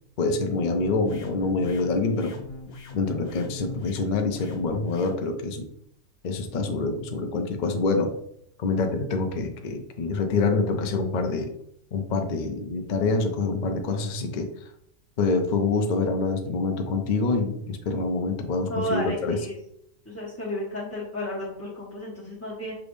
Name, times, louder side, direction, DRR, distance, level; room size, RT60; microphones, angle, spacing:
voice 1, 0.2-2.4 2.9-5.7 6.2-8.1 8.6-11.5 11.9-14.5 15.2-19.4, left 3 dB, 70° left, 5 dB, 0.4 m, -26 dB
sound 1, 0.8-5.2, left 3 dB, 55° left, 0.8 m, -41 dB
voice 2, 18.7-19.6 20.0-22.8, equal, 10° left, -8 dB, 0.8 m, -32 dB
5.9 x 3.3 x 2.6 m, 0.72 s
omnidirectional pair, 1.6 m